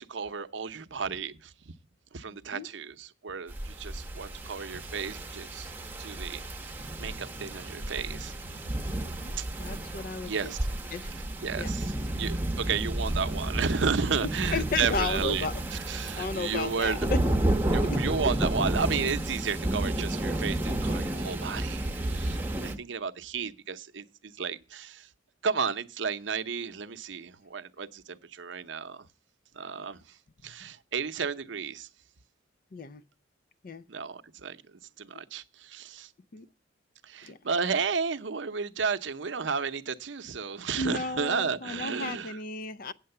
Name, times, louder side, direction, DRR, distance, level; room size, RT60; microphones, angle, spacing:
voice 1, 0.0-1.5 2.1-5.7 6.0-8.3 9.4-9.5 10.3-10.6 11.4-17.1 17.7-25.1 25.4-29.1 29.5-30.2 30.4-31.9 33.9-34.6 35.0-36.1 37.0-42.4, right 5 dB, 75° right, 0.7 m, -33 dB
voice 2, 2.3-2.7 9.0-9.3 9.6-10.6 10.9-11.1 11.6-11.7 14.5-15.5 15.9-17.2 17.8-18.0 22.6-22.8 32.7-33.0 33.6-33.8 36.3-36.5 37.2-37.4 40.8-42.9, left 3 dB, 50° left, 0.5 m, -34 dB
sound 1, 3.5-22.8, right 1 dB, 10° right, 0.9 m, -31 dB
8.8 x 7.3 x 6.7 m
head